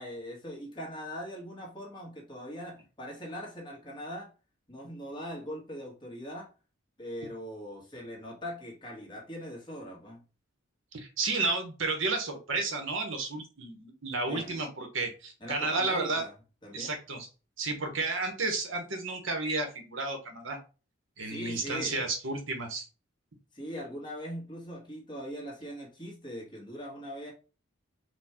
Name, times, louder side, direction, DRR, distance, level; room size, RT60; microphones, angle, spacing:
voice 1, 0.0-4.3 4.7-6.5 7.0-10.2 14.3-14.6 15.4-16.3 16.6-17.0 21.2-22.0 23.5-27.3, equal, 20° left, -2 dB, 1.4 m, -41 dB
voice 2, 10.9-16.2 16.7-17.3 17.6-20.6 21.2-22.8, right 3 dB, 65° right, 5 dB, 1.0 m, -32 dB
4.3 x 2.3 x 4.3 m, 0.33 s
head